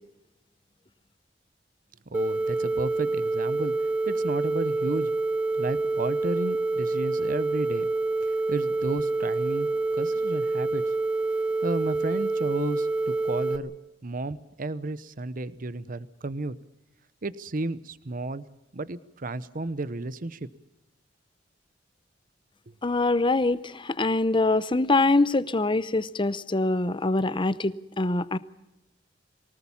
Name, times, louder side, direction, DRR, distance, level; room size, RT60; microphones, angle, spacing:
sound 1, 2.1-13.6, right 3 dB, 10° right, 1.6 m, -27 dB
voice 1, 2.1-3.7 4.1-5.1 5.6-7.9 8.5-9.7 10.0-10.8 11.6-13.7 14.0-16.6 17.2-18.5 18.7-20.5, right 2 dB, 50° right, 15 dB, 0.8 m, -32 dB
voice 2, 22.8-28.4, left 2 dB, 25° left, 16 dB, 0.7 m, -24 dB
24.0 x 18.5 x 7.2 m, 0.92 s
head